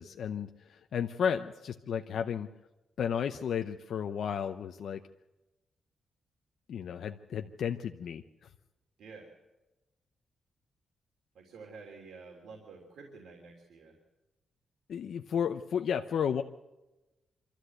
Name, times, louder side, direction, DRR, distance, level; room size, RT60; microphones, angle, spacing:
voice 1, 0.0-2.5 3.0-5.0 6.7-8.2 14.9-16.4, left 8 dB, 65° left, 6 dB, 0.7 m, -33 dB
voice 2, 11.3-14.0, right 4 dB, 85° right, -1 dB, 3.2 m, -49 dB
26.5 x 13.5 x 8.0 m, 1.0 s
wide cardioid pair, 165°, 0 cm